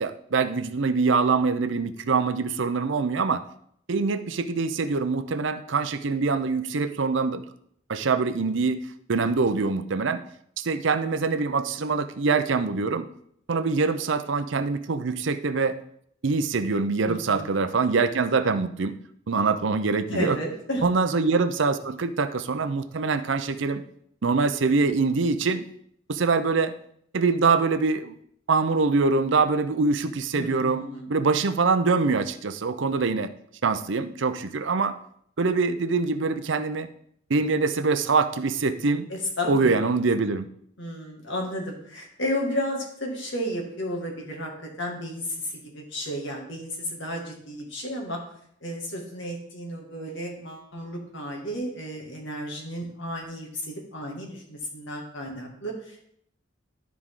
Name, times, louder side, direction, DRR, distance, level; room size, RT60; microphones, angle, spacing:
voice 1, 0.0-3.4 3.9-7.4 7.9-8.8 9.1-10.2 10.6-13.1 13.5-15.7 16.2-18.9 19.3-20.4 20.8-23.8 24.2-25.7 26.1-26.7 27.1-28.1 28.5-33.3 33.6-35.0 35.4-36.9 37.3-39.1 39.5-40.5, right 4 dB, 70° right, 11 dB, 0.6 m, -24 dB
voice 2, 17.0-17.5 20.1-20.9 30.3-31.1 39.1-39.7 40.8-48.2 48.6-56.0, equal, 65° left, 0 dB, 2.1 m, -33 dB
12.0 x 4.7 x 3.7 m, 0.68 s
head